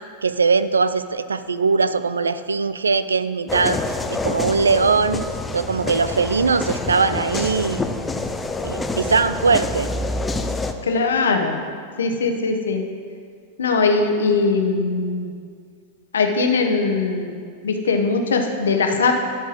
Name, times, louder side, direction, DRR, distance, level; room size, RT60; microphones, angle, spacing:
voice 1, 0.2-3.8 4.1-5.3 5.5-7.8 8.6-9.9, right 4 dB, 75° right, 14 dB, 0.3 m, -20 dB
sound 1, 3.5-10.7, left 2 dB, 10° left, 0.5 m, -27 dB
voice 2, 10.8-11.6 12.0-12.8 13.6-15.3 16.1-17.4 17.6-19.1, left 4 dB, 65° left, 4 dB, 1.0 m, -20 dB
12.0 x 4.4 x 6.3 m, 2.1 s
figure-of-eight pair, 90°, 0 cm